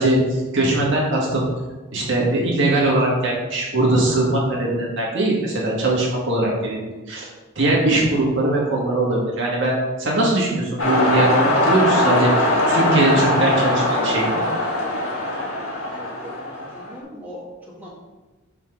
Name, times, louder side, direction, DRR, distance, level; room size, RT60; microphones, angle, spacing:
voice 1, 0.0-1.4 1.9-6.8 7.1-7.3 7.6-14.4, right 2 dB, 60° right, -3 dB, 1.7 m, -20 dB
sound 1, 10.8-17.0, left 1 dB, 80° left, 1.5 m, -21 dB
voice 2, 15.9-17.9, equal, 10° right, -6 dB, 1.5 m, -39 dB
5.8 x 3.7 x 5.8 m, 1.2 s
head